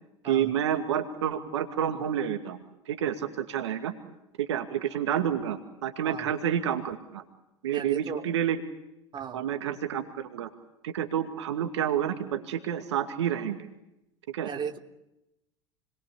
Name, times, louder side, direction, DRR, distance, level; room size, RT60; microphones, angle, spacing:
voice 1, 0.2-3.9 4.4-7.2 7.6-8.6 9.3-10.5 10.8-13.7 14.3-14.5, right 9 dB, 70° right, 7 dB, 2.4 m, -29 dB
voice 2, 7.7-8.2 9.1-9.4 14.4-14.8, right 7 dB, 30° right, 4 dB, 3.1 m, -35 dB
29.5 x 22.0 x 8.6 m, 0.88 s
figure-of-eight pair, 80°, 15 cm